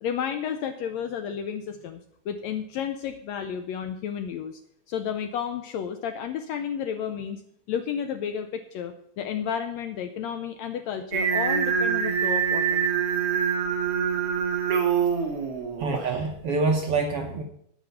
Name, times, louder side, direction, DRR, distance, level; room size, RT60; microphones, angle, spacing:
voice 1, 0.0-4.6 4.9-7.4 7.7-12.8, left 8 dB, 80° left, 9 dB, 1.6 m, -32 dB
Singing, 11.1-16.2, right 7 dB, 50° right, 2.7 m, -25 dB
voice 2, 15.8-17.4, right 3 dB, 70° right, 3 dB, 1.4 m, -26 dB
9.6 x 9.1 x 5.7 m, 0.71 s
omnidirectional pair, 3.7 m